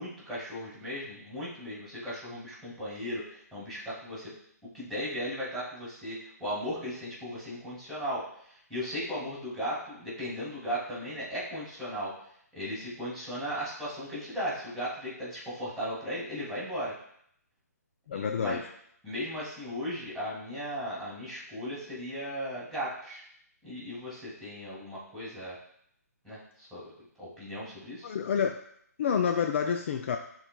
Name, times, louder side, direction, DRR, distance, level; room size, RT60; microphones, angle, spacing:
voice 1, 0.0-4.3 4.7-12.1 12.5-16.9 18.1-18.6 19.0-23.2 23.6-25.6 26.2-26.9 27.2-28.1, equal, ahead, -8 dB, 2.6 m, -36 dB
voice 2, 18.1-18.6 28.0-28.6 29.0-30.2, left 7 dB, 45° left, 5 dB, 0.4 m, -28 dB
11.0 x 4.0 x 2.3 m, 0.68 s
hypercardioid pair, 145°, 9 cm